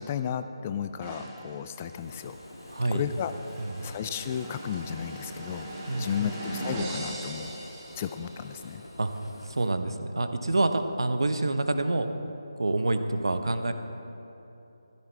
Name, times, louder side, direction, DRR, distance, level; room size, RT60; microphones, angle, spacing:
voice 1, 0.0-2.4 2.9-3.3 3.8-5.7 6.0-7.5 7.9-8.8, left 8 dB, 20° left, 11 dB, 0.3 m, -33 dB
sound 1, 1.0-8.6, right 1 dB, 20° right, 2.9 m, -39 dB
Fire, 1.9-9.7, left 1 dB, 75° left, 1.6 m, -48 dB
voice 2, 2.7-3.0 3.6-3.8 5.9-6.3 9.0-9.1 9.4-12.1 12.6-13.7, right 2 dB, 70° right, 8 dB, 0.9 m, -27 dB
15.0 x 14.5 x 3.4 m, 2.9 s
figure-of-eight pair, 155°, 3 cm